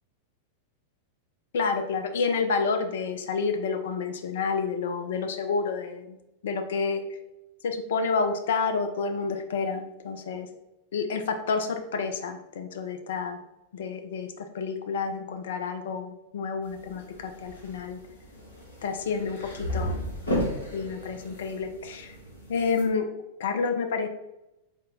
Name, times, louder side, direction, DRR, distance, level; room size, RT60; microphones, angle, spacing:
voice 1, 1.5-6.2 6.4-7.0 7.6-10.5 10.9-13.4 13.7-18.0 18.8-20.0 20.7-22.1 22.5-23.0 23.4-24.1, left 5 dB, 60° left, 6 dB, 0.4 m, -29 dB
sound 1, 16.6-22.8, equal, 80° left, 1.0 m, -35 dB
3.9 x 2.1 x 3.8 m, 0.93 s
figure-of-eight pair, 90°, 0 cm